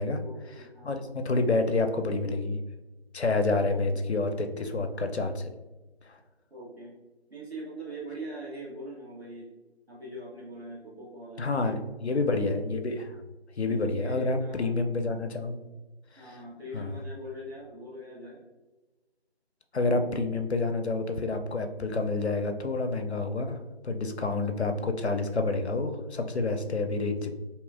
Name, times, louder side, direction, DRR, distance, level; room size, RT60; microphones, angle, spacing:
voice 1, 0.2-1.1 3.5-4.0 6.5-7.0 7.3-9.5 9.9-11.7 13.7-14.7 16.2-18.5 26.7-26.8, right 1 dB, 70° right, -5 dB, 1.5 m, -42 dB
voice 2, 0.8-2.6 3.1-5.5 11.4-13.1 13.6-15.6 16.7-16.9 19.7-23.6 23.8-27.3, left 3 dB, 85° left, 6 dB, 0.6 m, -28 dB
3.6 x 2.9 x 2.4 m, 1.1 s
figure-of-eight pair, 170°, 32 cm